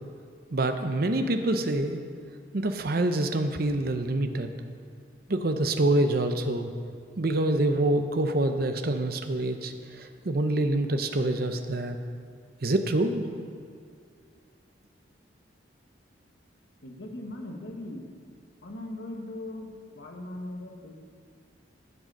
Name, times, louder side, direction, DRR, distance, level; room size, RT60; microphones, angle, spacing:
voice 1, 0.5-2.0 2.5-4.5 5.3-6.7 7.2-12.0 12.6-13.3, right 1 dB, 50° right, 7 dB, 0.7 m, -26 dB
voice 2, 16.8-18.1 18.6-20.9, left 1 dB, 70° left, 1 dB, 1.3 m, -39 dB
11.5 x 7.7 x 5.4 m, 2.2 s
head